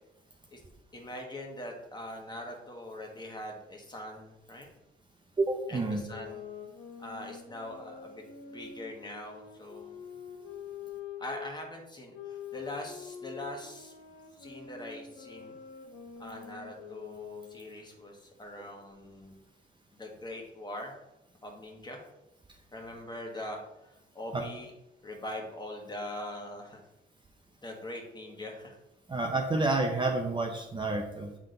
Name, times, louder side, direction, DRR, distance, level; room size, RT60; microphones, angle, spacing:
voice 1, 0.9-4.7 5.7-6.4 7.0-10.0 11.2-13.9 14.3-15.6 16.2-19.4 19.9-20.9 21.4-22.0 22.7-24.7 25.0-26.8 27.6-28.8, left 1 dB, 20° left, 1 dB, 1.5 m, -42 dB
voice 2, 5.4-6.1 24.3-24.4 29.1-31.4, right 2 dB, 25° right, 2 dB, 0.7 m, -29 dB
sound 1, 5.9-11.5 12.1-17.7, left 7 dB, 85° left, 1.5 m, -45 dB
7.4 x 3.7 x 3.9 m, 0.91 s
cardioid pair, 90°, 20 cm